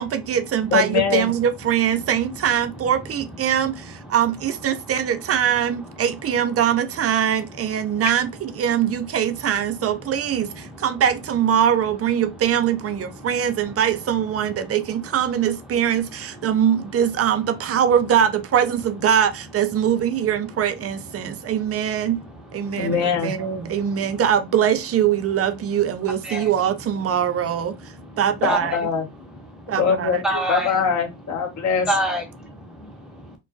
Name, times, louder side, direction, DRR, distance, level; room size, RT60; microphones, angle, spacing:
voice 1, 0.0-22.2 22.5-27.8 28.2-28.8 29.7-30.2, right 9 dB, 35° right, 0.4 m, -22 dB
voice 2, 0.7-1.3 22.8-23.3 28.4-29.0 29.8-31.9, left 6 dB, 40° left, 0.8 m, -22 dB
voice 3, 30.2-30.8 31.9-33.3, right 1 dB, ahead, 0.9 m, -27 dB
2.2 x 2.2 x 2.5 m
supercardioid pair, 80°, 45 cm